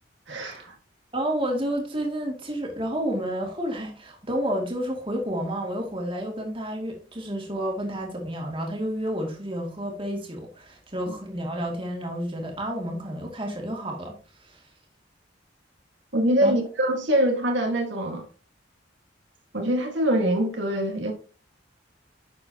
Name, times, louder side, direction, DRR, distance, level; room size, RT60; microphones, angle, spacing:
voice 1, 0.3-0.7 16.1-18.2 19.5-21.1, right 1 dB, 70° right, 1.7 m, -24 dB
voice 2, 1.1-14.2 14.4-14.6 16.4-16.5, equal, 25° right, 2.3 m, -30 dB
10.5 x 6.8 x 2.8 m
head